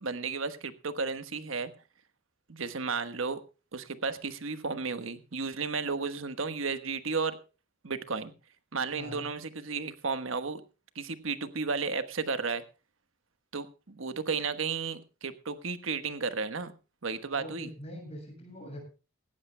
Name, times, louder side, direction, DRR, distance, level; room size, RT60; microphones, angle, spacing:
voice 1, 0.0-1.7 2.5-3.4 3.7-7.4 7.8-8.3 8.7-10.6 10.9-12.6 13.5-16.7 17.0-17.7, right 4 dB, 80° right, 11 dB, 1.3 m, -33 dB
voice 2, 17.2-18.8, equal, 30° left, 2 dB, 7.0 m, -43 dB
18.5 x 16.5 x 2.2 m, 0.32 s
head